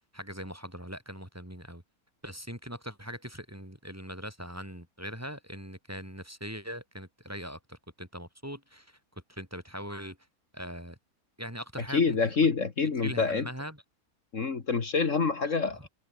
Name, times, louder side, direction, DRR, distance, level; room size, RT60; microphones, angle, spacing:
voice 1, 0.1-1.8 2.2-9.0 9.3-10.2 10.5-11.0 11.4-12.3 13.0-13.8 15.5-15.9, equal, 10° right, 4.6 m, -41 dB
voice 2, 11.9-13.5 14.3-15.9, left 5 dB, 55° left, 2.1 m, -26 dB
omnidirectional pair, 1.6 m